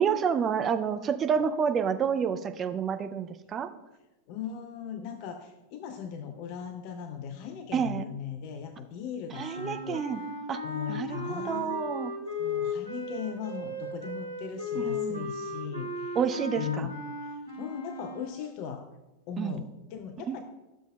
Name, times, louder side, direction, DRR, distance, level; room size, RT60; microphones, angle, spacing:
voice 1, 0.0-3.7 7.7-8.0 9.3-10.2 10.5-10.6 10.9-12.1 14.8-15.3 16.2-16.9 19.4-19.6 20.3-20.4, right 7 dB, 25° right, 8 dB, 0.5 m, -29 dB
voice 2, 4.3-10.3 10.6-11.8 12.4-16.2 16.6-18.9 19.3-20.4, left 8 dB, 45° left, 7 dB, 0.6 m, -38 dB
sound 1, 9.3-18.5, left 3 dB, 85° right, 1.8 m, -36 dB
12.5 x 7.1 x 2.2 m, 1.0 s
figure-of-eight pair, 90°, 0 cm